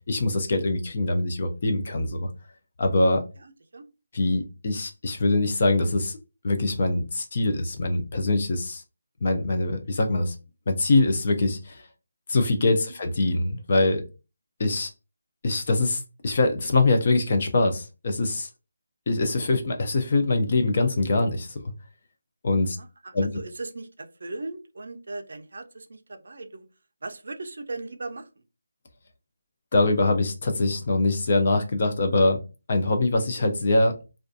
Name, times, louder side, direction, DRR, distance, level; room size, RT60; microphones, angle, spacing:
voice 1, 0.1-2.3 2.8-3.2 4.1-6.2 6.4-8.8 9.2-10.4 10.7-11.9 12.3-14.0 14.6-14.9 15.4-18.5 19.1-21.6 22.4-22.8 23.1-23.3 29.7-32.4 32.7-33.9, left 2 dB, 30° left, 5 dB, 0.3 m, -23 dB
voice 2, 3.4-3.9 22.6-26.7 27.0-28.3, right 2 dB, 50° right, 6 dB, 0.4 m, -38 dB
2.4 x 2.2 x 2.5 m, 0.30 s
hypercardioid pair, 180°, 0 cm